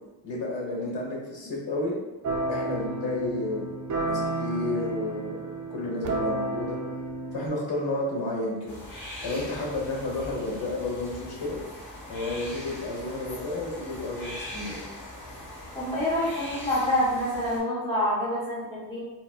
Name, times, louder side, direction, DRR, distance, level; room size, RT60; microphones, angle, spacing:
voice 1, 0.2-2.0 2.5-3.7 4.0-5.4 5.7-6.8 7.3-8.8 9.2-11.6 12.1-14.8, left 2 dB, 80° left, -3 dB, 1.2 m, -31 dB
sound 1, 2.2-7.5, right 2 dB, 45° right, 0.5 m, -31 dB
sound 2, 8.7-17.6, left 1 dB, 45° left, 1.3 m, -41 dB
voice 2, 15.7-19.0, left 1 dB, 10° left, -9 dB, 0.6 m, -27 dB
4.0 x 2.1 x 2.3 m, 1.0 s
wide cardioid pair, 130°, 43 cm